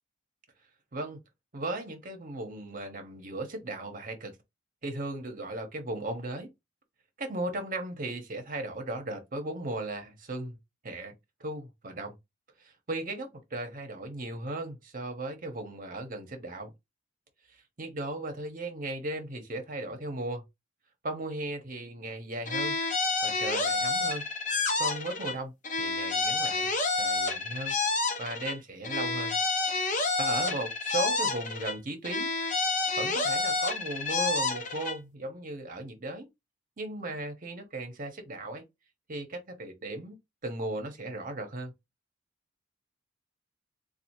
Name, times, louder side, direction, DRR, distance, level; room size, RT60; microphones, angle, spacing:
voice 1, 1.5-4.3 4.8-6.5 7.2-10.6 10.8-11.1 11.4-12.1 12.6-16.7 17.5-20.4 21.0-22.8 23.2-24.2 24.8-26.7 27.0-27.8 28.2-29.3 30.2-32.3 33.0-36.3 36.8-38.6 39.1-40.2 40.4-41.7, right 2 dB, 45° right, 0.9 m, -36 dB
sound 1, 22.4-25.4 25.6-28.6 28.8-31.8 32.0-35.0, left 3 dB, 40° left, 0.7 m, -29 dB
3.3 x 2.4 x 3.0 m
head